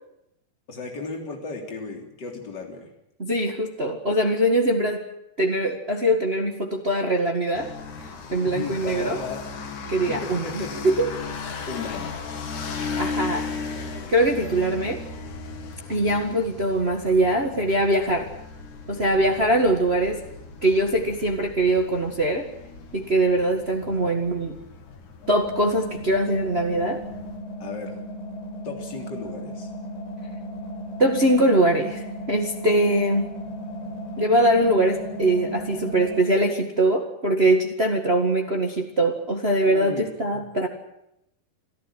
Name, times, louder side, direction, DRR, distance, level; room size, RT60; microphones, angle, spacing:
voice 1, 0.7-2.9 8.4-9.5 10.1-10.7 11.7-12.2 12.8-13.2 23.8-24.1 27.6-28.0 28.6-29.7 39.6-40.4, left 4 dB, 25° left, 2 dB, 3.7 m, -35 dB
voice 2, 3.2-5.0 5.4-7.7 8.0-9.2 9.9-11.1 13.0-13.5 14.1-15.0 15.9-18.3 18.9-20.2 20.6-22.5 22.9-24.6 25.3-27.0 31.0-33.3 34.2-40.7, right 1 dB, 75° right, 3 dB, 0.5 m, -22 dB
sound 1, 7.5-27.4, left 4 dB, 50° left, 3.4 m, -37 dB
sound 2, 25.2-36.2, equal, 70° left, 5.7 m, -36 dB
26.0 x 14.0 x 9.9 m, 0.84 s
omnidirectional pair, 4.7 m